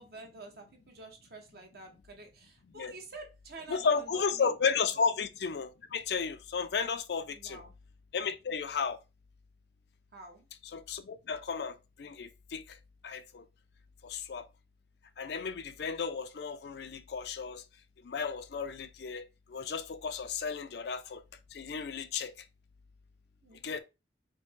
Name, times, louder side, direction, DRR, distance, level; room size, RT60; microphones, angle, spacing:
voice 1, 0.0-4.5 4.9-5.0 7.3-7.7 10.1-10.5 23.4-23.8, right 2 dB, 55° right, 1.1 m, -49 dB
voice 2, 3.7-7.6 8.1-9.0 10.7-12.8 13.0-13.4 14.0-14.5 15.2-17.6 18.0-21.2 21.5-22.3 23.6-23.8, left 5 dB, 60° left, 0.4 m, -33 dB
4.9 x 2.1 x 3.6 m
head